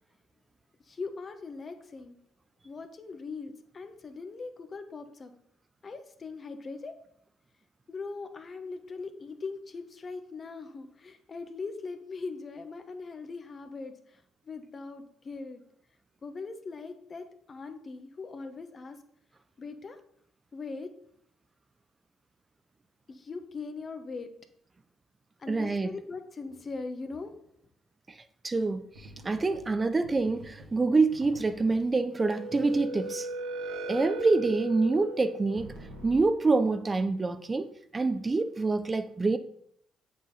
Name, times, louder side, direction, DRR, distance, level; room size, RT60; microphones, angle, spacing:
voice 1, 0.8-2.2 2.6-5.3 5.8-6.9 7.9-15.6 16.2-19.0 19.6-20.0 20.5-20.9 23.1-24.3 25.4-27.4, left 4 dB, 40° left, 1.1 m, -40 dB
voice 2, 25.5-25.9 28.4-33.3 33.9-35.7 36.0-39.4, right 3 dB, 30° right, 0.5 m, -26 dB
sound 1, 29.0-29.7 30.0-30.8 31.1-31.8 32.2-36.2, right 2 dB, 80° right, 1.8 m, -39 dB
7.8 x 6.3 x 4.0 m
hypercardioid pair, 55°, 0 cm